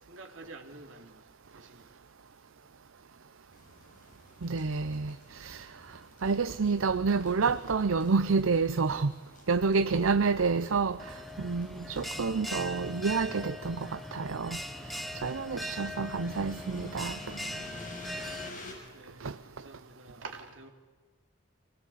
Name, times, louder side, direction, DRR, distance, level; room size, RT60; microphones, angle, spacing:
voice 1, 0.0-1.9 18.9-20.7, right 3 dB, 70° right, 2.9 m, -48 dB
sound 1, 3.5-18.7, left 1 dB, 40° left, 6.7 m, -51 dB
voice 2, 4.4-5.7 6.2-9.1 9.5-14.6 15.2-17.2 19.2-19.4, right 4 dB, 90° right, 0.7 m, -29 dB
Bell, 11.0-18.5, left 1 dB, ahead, 1.0 m, -40 dB
25.5 x 19.5 x 8.5 m
head